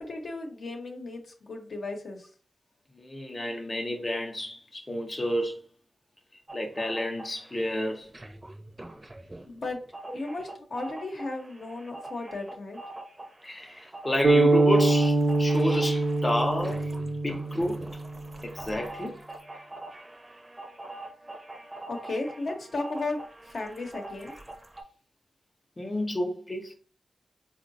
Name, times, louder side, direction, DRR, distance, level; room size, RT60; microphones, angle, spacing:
voice 1, 0.0-2.3 9.5-9.8 10.1-12.8 21.9-23.2 23.4-24.3, left 2 dB, 70° left, 0.7 m, -35 dB
voice 2, 2.9-5.6 6.5-8.1 13.4-16.9 17.2-17.9 18.4-19.2 25.8-26.7, left 1 dB, 30° left, 0.5 m, -30 dB
sound 1, 6.5-7.7 8.0-24.8, right 2 dB, 30° right, 0.5 m, -44 dB
sound 2, 14.2-18.2, right 2 dB, 85° right, 0.6 m, -23 dB
3.8 x 2.0 x 2.6 m
cardioid pair, 60°, 0 cm